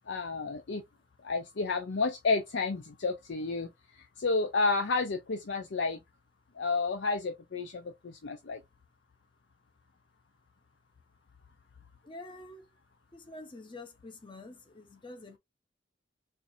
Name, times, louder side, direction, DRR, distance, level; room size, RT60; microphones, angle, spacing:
voice 1, 0.1-0.8 1.2-3.7 4.0-6.0 6.6-8.6, left 3 dB, 70° left, 0.6 m, -31 dB
voice 2, 12.0-12.7 13.1-15.4, left 2 dB, 25° left, 0.7 m, -47 dB
4.5 x 2.5 x 2.6 m
head